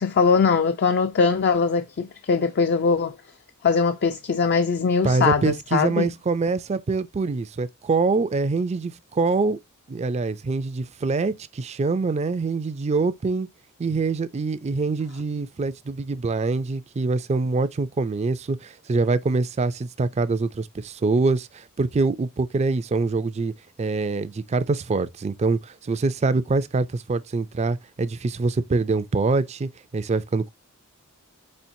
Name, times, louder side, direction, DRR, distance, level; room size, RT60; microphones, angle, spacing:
voice 1, 0.0-3.2 3.6-6.1, left 5 dB, 50° left, 0.4 m, -21 dB
voice 2, 5.0-9.6 9.9-13.5 13.8-23.5 23.8-30.5, right 3 dB, 30° right, 0.4 m, -24 dB
4.4 x 4.3 x 2.6 m
head